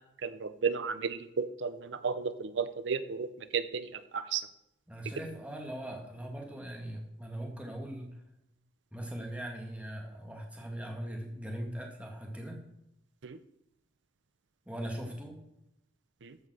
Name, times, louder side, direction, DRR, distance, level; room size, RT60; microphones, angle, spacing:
voice 1, 0.2-3.3 3.5-4.4 13.2-13.4, right 5 dB, 65° right, 12 dB, 0.6 m, -33 dB
voice 2, 4.9-8.1 8.9-12.6 14.7-15.4, right 1 dB, 5° right, 1 dB, 2.0 m, -40 dB
14.0 x 5.5 x 6.3 m, 0.83 s
head